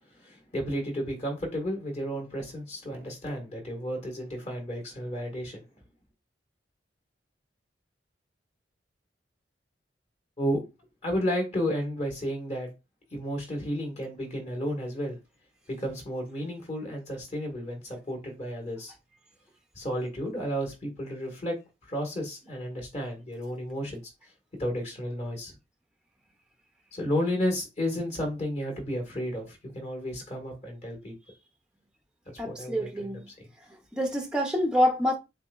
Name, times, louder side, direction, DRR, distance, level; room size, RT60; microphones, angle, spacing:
voice 1, 0.2-5.6 10.4-10.6 11.0-12.7 13.1-15.2 15.7-18.9 19.8-21.6 21.9-24.0 24.6-25.5 26.9-31.1 32.3-33.1, equal, 40° left, 1.7 m, -32 dB
voice 2, 32.4-33.3 33.9-35.2, equal, 5° right, 0.5 m, -26 dB
7.3 x 2.5 x 2.4 m
head